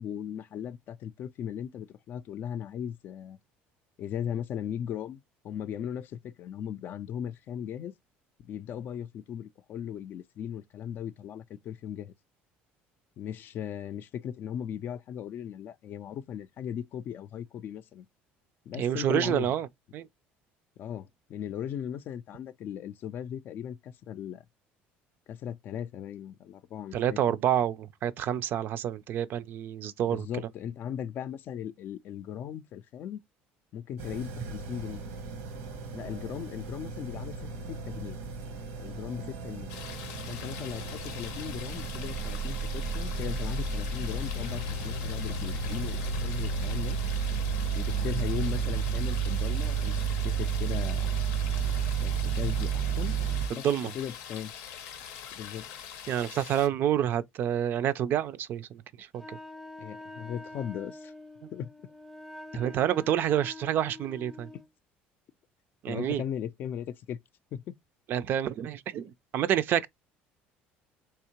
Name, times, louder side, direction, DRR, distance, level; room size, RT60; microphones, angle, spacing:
voice 1, 0.0-3.4 4.0-7.9 8.4-12.1 13.2-18.1 18.7-19.5 20.8-24.5 25.3-27.2 30.0-33.2 33.7-35.0 35.9-37.3 37.7-38.2 38.8-39.7 40.3-47.0 47.7-50.0 50.2-51.1 52.0-53.2 53.5-54.5 55.3-55.7 59.8-61.1 61.5-61.7 62.5-62.6 65.9-67.2 67.5-67.7, left 9 dB, 55° left, 0.3 m, -38 dB
voice 2, 18.7-19.7 19.9-20.1 26.9-30.3 53.5-53.9 56.1-58.7 59.0-59.4 61.4-61.5 62.5-64.5 65.8-66.2 68.1-69.9, right 10 dB, 55° right, 0.4 m, -28 dB
sound 1, 34.0-53.5, right 5 dB, 90° right, 0.8 m, -32 dB
sound 2, 39.7-56.7, left 8 dB, 85° left, 0.6 m, -44 dB
Wind instrument woodwind instrument, 59.1-64.7, left 2 dB, ahead, 0.5 m, -46 dB
3.5 x 2.8 x 2.9 m
cardioid pair, 115°, 4 cm